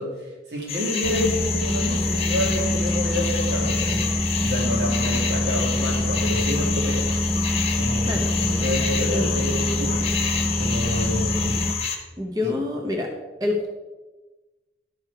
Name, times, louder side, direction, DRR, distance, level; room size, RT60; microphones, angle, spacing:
voice 1, 0.0-7.1 7.8-10.1 10.5-11.6 12.4-12.6, left 1 dB, 75° right, -1 dB, 2.4 m, -29 dB
sound 1, 0.7-12.0, left 6 dB, 35° left, 1.1 m, -28 dB
sound 2, 1.0-11.7, left 1 dB, 5° left, 0.4 m, -25 dB
voice 2, 9.0-9.4 12.2-13.1 13.4-13.7, left 2 dB, 20° right, 2 dB, 0.8 m, -27 dB
11.5 x 5.1 x 4.8 m, 1.2 s
head